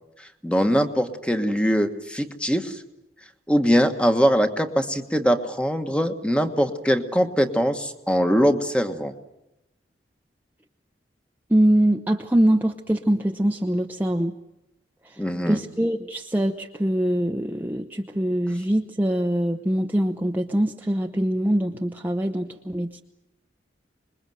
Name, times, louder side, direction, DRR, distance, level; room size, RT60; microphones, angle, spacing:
voice 1, 0.4-2.8 3.5-9.1 15.2-15.6, equal, 5° left, 7 dB, 1.4 m, -22 dB
voice 2, 11.5-14.4 15.0-15.2 15.5-23.0, right 1 dB, 10° right, 2 dB, 0.9 m, -23 dB
26.0 x 21.5 x 7.8 m, 0.91 s
head